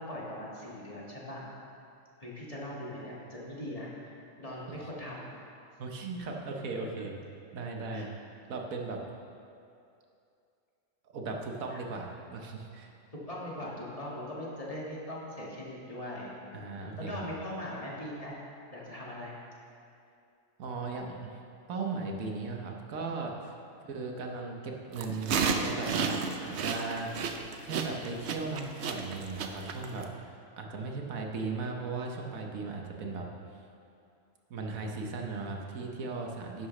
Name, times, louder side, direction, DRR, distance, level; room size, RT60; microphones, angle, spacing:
voice 1, 0.0-1.5 2.2-5.3 7.0-7.1 7.9-8.1 11.7-11.8 13.3-18.3 18.7-19.4 23.8-23.9 32.7-33.1, left 1 dB, 25° left, -5 dB, 1.7 m, -41 dB
voice 2, 5.8-7.1 7.5-8.1 8.5-9.0 11.1-12.9 16.5-17.1 20.6-21.3 21.7-23.5 23.9-27.1 27.6-33.3 34.5-36.7, right 3 dB, 90° right, 1 dB, 1.4 m, -37 dB
sound 1, 25.0-30.0, right 5 dB, 60° right, 0.9 m, -32 dB
11.5 x 9.8 x 3.2 m, 2.6 s
omnidirectional pair, 1.4 m